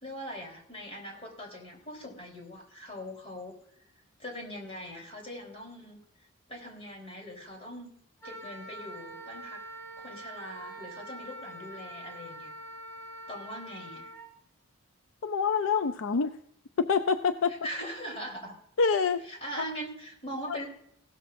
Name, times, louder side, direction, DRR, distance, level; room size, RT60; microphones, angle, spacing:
voice 1, 0.0-3.5 4.2-6.0 6.5-7.9 8.2-9.6 10.0-12.5 13.3-14.1 17.6-18.6 19.3-20.7, equal, 30° left, 0 dB, 3.7 m, -41 dB
Wind instrument woodwind instrument, 8.2-14.3, right 1 dB, 10° left, 4.6 m, -44 dB
voice 2, 15.2-16.4 16.8-17.5 18.8-19.2 19.6-19.7 20.5-20.6, left 5 dB, 65° left, 10 dB, 0.5 m, -26 dB
16.5 x 13.0 x 2.6 m, 0.70 s
head